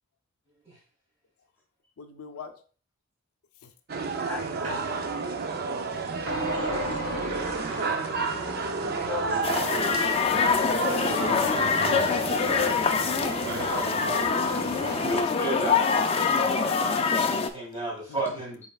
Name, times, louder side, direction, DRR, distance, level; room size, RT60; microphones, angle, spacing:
voice 1, 2.0-2.6 3.6-3.7 9.2-9.4 10.3-11.1 14.8-15.0 18.1-18.4, left 5 dB, 85° left, 0.5 m, -44 dB
sound 1, 3.9-15.2, right 4 dB, 45° right, 0.5 m, -31 dB
voice 2, 4.3-5.7 6.4-8.1 8.8-9.5 10.4-10.6, left 3 dB, 10° left, 1.4 m, -41 dB
sound 2, 4.6-4.8 6.3-10.0, right 1 dB, 65° right, 1.3 m, -34 dB
sound 3, 9.4-17.5, left 5 dB, 25° left, 0.3 m, -25 dB
voice 3, 15.0-18.6, right 2 dB, 25° right, 2.6 m, -34 dB
5.5 x 4.1 x 2.3 m
head